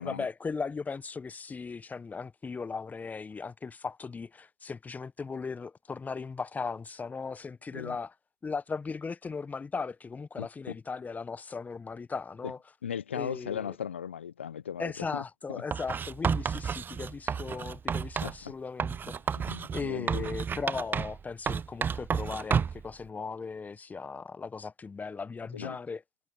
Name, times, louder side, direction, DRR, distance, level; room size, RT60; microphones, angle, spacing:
voice 1, 0.0-8.1 8.4-12.6 13.1-13.7 14.8-19.4 19.7-26.0, left 4 dB, 25° left, 1.2 m, -37 dB
voice 2, 10.4-10.7 12.4-12.5 12.8-15.2 15.5-15.6 18.2-18.5 19.3-20.3 25.5-25.8, left 8 dB, 90° left, 0.8 m, -37 dB
Writing, 15.7-18.4 18.8-21.2 21.5-22.9, right 7 dB, 30° right, 0.6 m, -31 dB
hypercardioid pair, 60°, 6 cm